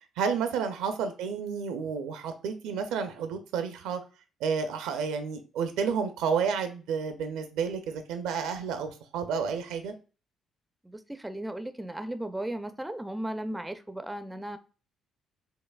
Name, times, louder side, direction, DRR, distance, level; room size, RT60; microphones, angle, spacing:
voice 1, 0.2-4.0 4.4-9.9, right 6 dB, 70° right, 0.4 m, -31 dB
voice 2, 10.8-14.6, right 1 dB, 10° right, 0.4 m, -36 dB
5.3 x 2.1 x 2.3 m
hypercardioid pair, 45°, 0 cm